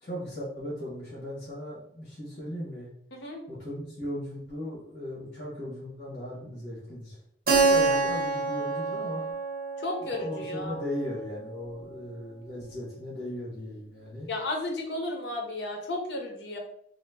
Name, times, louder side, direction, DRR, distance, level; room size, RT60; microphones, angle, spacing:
voice 1, 0.0-2.9 3.5-7.2 7.6-9.2 10.0-14.3, left 1 dB, 50° left, -7 dB, 1.2 m, -37 dB
voice 2, 3.1-3.4 7.8-8.0 9.8-10.8 14.3-16.6, left 2 dB, 80° left, 1 dB, 0.8 m, -33 dB
Keyboard (musical), 7.5-12.0, right 3 dB, 55° right, 0.6 m, -28 dB
2.9 x 2.1 x 3.3 m, 0.67 s
head